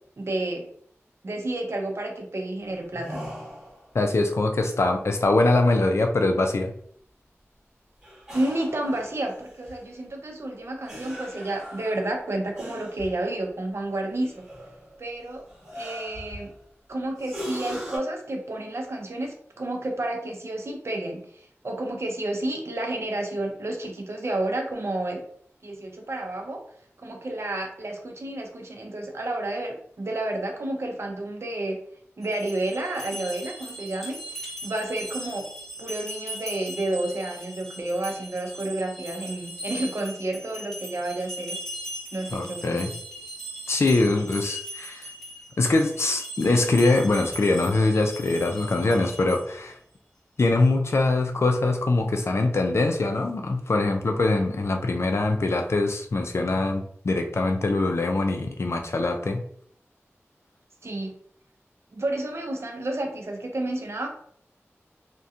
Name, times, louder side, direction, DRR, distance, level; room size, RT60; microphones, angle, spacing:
voice 1, 0.2-0.7 1.2-3.2 8.3-14.4 15.0-15.4 15.7-16.5 16.9-25.2 25.6-26.6 27.0-31.8 32.2-35.5 35.8-41.6 42.1-42.9 60.8-61.1 61.9-64.1, right 1 dB, 60° right, 2 dB, 0.6 m, -30 dB
sound 1, 2.7-3.9 8.0-9.9 10.9-13.2 14.2-15.0 15.5-16.6 17.2-18.0, equal, 10° right, 1.4 m, -40 dB
voice 2, 3.9-6.7 42.3-42.9 43.7-45.1 45.6-49.8 50.4-59.4, left 2 dB, 60° left, 4 dB, 0.4 m, -23 dB
sound 2, 32.2-49.7, right 1 dB, 5° left, 1.1 m, -39 dB
2.7 x 2.1 x 2.4 m, 0.63 s
wide cardioid pair, 75°, 5 cm